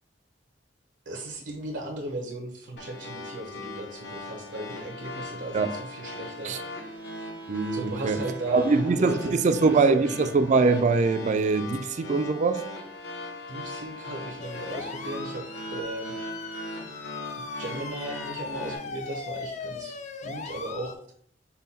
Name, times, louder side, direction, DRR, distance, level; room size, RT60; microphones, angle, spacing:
voice 1, 1.1-7.1 7.7-10.2 13.5-16.2 17.6-21.0, right 2 dB, 80° right, 0.8 m, -37 dB
sound 1, 2.8-18.8, left 1 dB, 75° left, 1.0 m, -39 dB
voice 2, 7.5-8.2 8.5-12.6, right 4 dB, 40° right, 0.3 m, -23 dB
sound 2, 14.4-20.9, left 4 dB, 40° left, 0.4 m, -38 dB
5.5 x 2.2 x 4.1 m
head